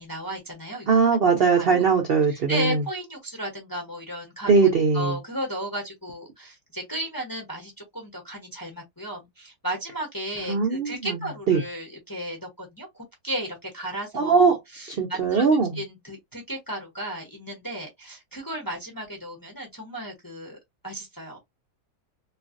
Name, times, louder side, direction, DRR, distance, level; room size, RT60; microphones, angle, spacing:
voice 1, 0.0-0.9 1.6-1.8 2.3-4.5 4.9-15.5 15.7-20.6 20.8-21.4, right 1 dB, 20° left, 0.6 m, -34 dB
voice 2, 0.9-2.8 4.5-5.2 10.4-11.2 11.5-11.6 14.1-14.6 15.0-15.7, right 5 dB, 70° right, 0.5 m, -20 dB
3.1 x 2.4 x 2.5 m
omnidirectional pair, 1.9 m